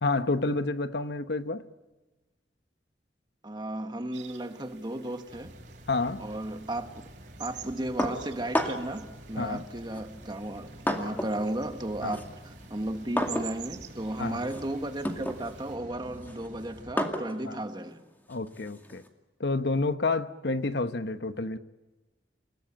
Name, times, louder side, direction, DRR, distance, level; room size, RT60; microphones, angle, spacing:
voice 1, 0.0-1.6 5.9-6.2 9.4-9.6 12.0-12.1 14.2-14.4 17.5-17.6 18.3-19.0 19.4-21.6, left 3 dB, 70° left, 1.1 m, -29 dB
voice 2, 3.4-5.5 6.2-7.0 7.4-10.7 11.0-18.0, right 1 dB, 25° right, 1.6 m, -34 dB
sound 1, 4.1-15.8, right 9 dB, 80° right, 2.5 m, -50 dB
Rain, 5.3-17.0, right 1 dB, 50° right, 4.7 m, -49 dB
sound 2, 8.0-9.0 9.9-11.5 11.8-19.1, equal, 10° left, 2.3 m, -34 dB
29.0 x 18.5 x 8.9 m
head